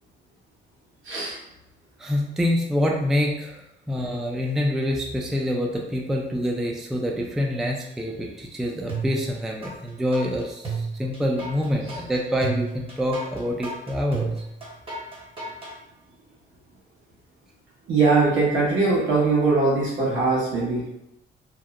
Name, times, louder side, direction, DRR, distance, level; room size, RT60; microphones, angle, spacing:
voice 1, 2.0-3.6 3.9-14.3, equal, ahead, 0 dB, 0.3 m, -26 dB
sound 1, 8.9-9.7 10.1-15.7, right 4 dB, 25° right, 0.9 m, -32 dB
voice 2, 17.9-20.8, right 3 dB, 80° right, -6 dB, 1.2 m, -21 dB
2.8 x 2.1 x 2.4 m, 0.86 s
cardioid pair, 90°, 20 cm